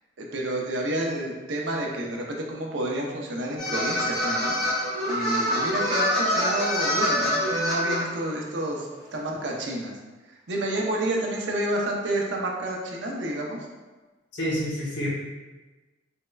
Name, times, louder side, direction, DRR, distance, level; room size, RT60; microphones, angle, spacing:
voice 1, 0.2-4.6 5.0-9.9 10.2-13.6, right 1 dB, 65° right, -1 dB, 0.6 m, -30 dB
sound 1, 3.6-8.0, equal, ahead, 1.4 m, -25 dB
voice 2, 14.3-15.1, equal, 65° left, -5 dB, 0.9 m, -28 dB
3.5 x 3.1 x 2.2 m, 1.2 s
head